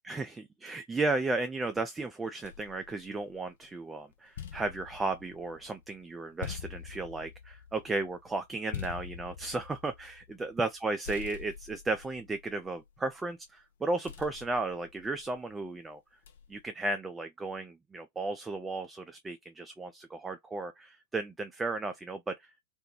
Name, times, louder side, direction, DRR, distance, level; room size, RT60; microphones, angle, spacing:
voice 1, 0.0-16.0 16.5-22.5, right 3 dB, 10° right, 0.3 m, -34 dB
sound 1, 2.4-3.7 4.1-10.8 11.0-13.3 14.0-15.5 16.2-16.7, left 8 dB, 60° left, 0.5 m, -45 dB
2.4 x 2.1 x 2.9 m
figure-of-eight pair, 90°, 0 cm